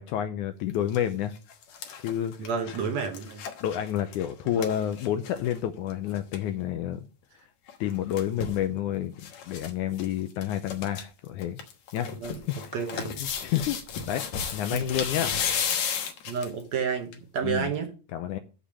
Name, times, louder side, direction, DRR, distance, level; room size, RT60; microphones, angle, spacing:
voice 1, 0.0-1.3 2.0-2.5 3.6-7.0 7.8-11.6 11.9-12.7 13.2-13.8 14.1-14.3 14.5-15.4 17.4-17.7 18.1-18.4, left 10 dB, 80° left, 1.8 m, -29 dB
sound 1, 0.7-1.0 1.4-5.6 5.9-6.0 6.2-6.4 7.7-8.6 9.2-9.7 10.0-10.1 10.4-11.0 11.4-16.6 17.1-17.2, left 7 dB, 65° left, 2.3 m, -33 dB
voice 2, 2.4-3.4 4.6-4.7 12.2-12.4 12.7-13.2 14.7-14.9 16.3-17.9, right 6 dB, 65° right, 1.9 m, -30 dB
7.4 x 6.8 x 7.3 m
omnidirectional pair, 4.0 m